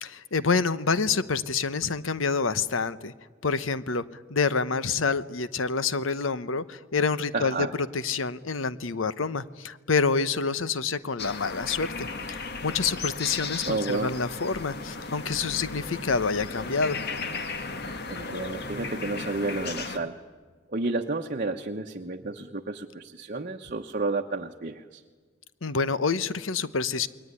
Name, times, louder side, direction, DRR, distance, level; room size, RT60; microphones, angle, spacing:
voice 1, 0.0-3.1 3.4-7.7 7.9-17.0 25.6-27.1, left 4 dB, 80° left, 15 dB, 1.0 m, -27 dB
voice 2, 7.3-7.7 13.7-14.2 18.1-20.2 20.7-25.0, right 3 dB, 45° right, 2 dB, 1.0 m, -31 dB
sound 1, 11.2-20.0, left 4 dB, 55° left, 1.8 m, -35 dB
28.5 x 21.5 x 9.7 m, 1.5 s
head